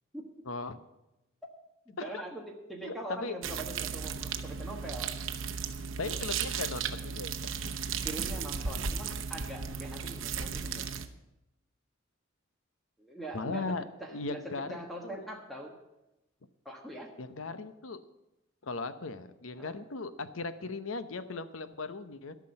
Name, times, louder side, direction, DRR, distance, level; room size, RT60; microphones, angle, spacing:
voice 1, 0.5-0.8 2.0-2.2 2.8-3.4 6.0-7.7 8.7-8.9 13.3-15.3 17.2-18.0 18.6-22.3, left 3 dB, 80° left, 12 dB, 0.9 m, -38 dB
voice 2, 1.9-5.1 8.0-10.9 13.0-15.8 16.6-17.1 19.6-19.7, right 1 dB, ahead, 1 dB, 1.4 m, -43 dB
sound 1, 3.4-11.1, right 6 dB, 70° right, 0.9 m, -35 dB
13.0 x 6.1 x 9.7 m, 0.95 s
head